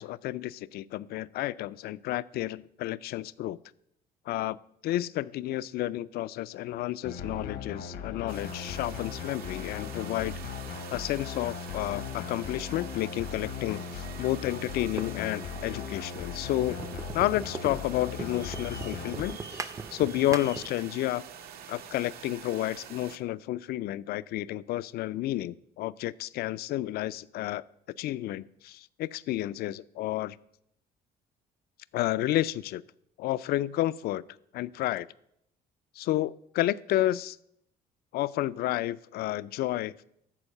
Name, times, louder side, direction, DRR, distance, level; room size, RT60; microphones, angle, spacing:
voice 1, 0.0-3.6 4.3-4.6 4.8-10.3 10.9-16.8 17.1-21.2 21.7-27.6 28.0-30.4 31.9-32.8 33.2-34.2 34.5-35.1 36.0-37.4 38.1-40.0, left 14 dB, 70° left, 18 dB, 0.4 m, -31 dB
sound 1, 7.0-19.3, left 6 dB, 85° left, 1.1 m, -38 dB
sound 2, 8.3-23.2, right 8 dB, 65° right, 0.8 m, -46 dB
sound 3, 15.0-20.9, right 4 dB, 20° right, 0.4 m, -41 dB
13.5 x 4.5 x 6.6 m, 0.75 s
cardioid pair, 110°, 17 cm